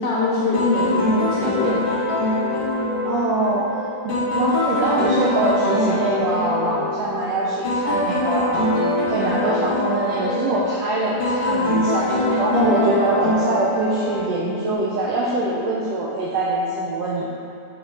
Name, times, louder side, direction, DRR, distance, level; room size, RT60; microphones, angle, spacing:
voice 1, 0.0-1.9 12.5-12.7, left 3 dB, 75° left, -6 dB, 1.4 m, -23 dB
sound 1, 0.5-14.8, left 1 dB, 50° left, 1.4 m, -23 dB
voice 2, 3.0-8.6 9.1-17.3, right 2 dB, 85° right, -5 dB, 1.4 m, -23 dB
5.0 x 4.1 x 4.7 m, 2.6 s
omnidirectional pair, 3.6 m